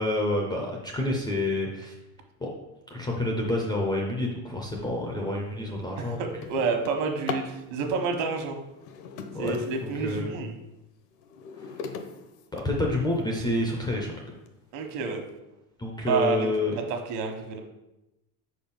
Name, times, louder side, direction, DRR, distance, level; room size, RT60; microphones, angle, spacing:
voice 1, 0.0-1.9 2.4-2.5 2.9-6.2 9.3-9.6 9.8-10.4 11.6-12.0 12.5-14.1 15.8-16.7, left 1 dB, 10° left, -1 dB, 0.4 m, -28 dB
Drawer open or close, 4.9-5.1 5.6-7.6 8.6-10.3 10.8-13.2 13.9-14.0 14.5-14.6 14.9-15.3, left 5 dB, 70° left, 0.8 m, -40 dB
voice 2, 6.0-8.6 9.4-10.5 14.7-15.2 16.0-16.5 16.7-17.6, right 5 dB, 65° right, 4 dB, 1.3 m, -29 dB
5.1 x 4.4 x 5.2 m, 0.95 s
cardioid pair, 155°, 45 cm